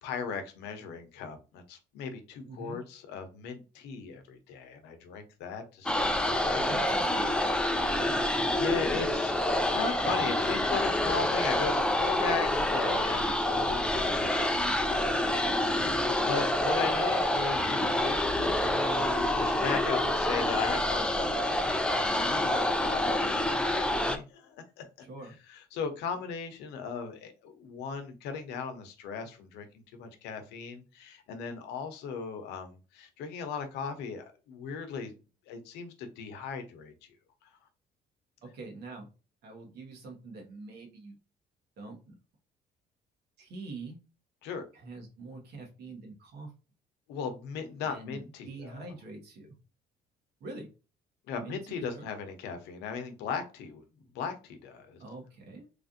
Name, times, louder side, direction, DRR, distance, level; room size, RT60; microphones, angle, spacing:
voice 1, 0.0-6.8 8.0-8.2 8.6-14.6 16.3-24.9 25.5-29.7 29.9-35.1 35.5-36.9 37.4-37.5 44.4-44.7 47.1-48.9 51.3-53.8 54.1-55.0, left 6 dB, 85° left, 0.7 m, -37 dB
voice 2, 2.4-2.8 6.5-7.4 7.9-8.2 15.5-15.9 25.1-25.4 38.4-39.1 39.4-41.2 41.8-42.2 43.4-44.0 44.7-46.5 47.8-49.6 50.4-50.7 51.3-52.1 55.0-55.7, right 3 dB, 70° right, 1.2 m, -44 dB
sound 1, 5.9-24.2, left 1 dB, 5° left, 0.3 m, -27 dB
3.2 x 2.5 x 2.6 m
cardioid pair, 110°, 17 cm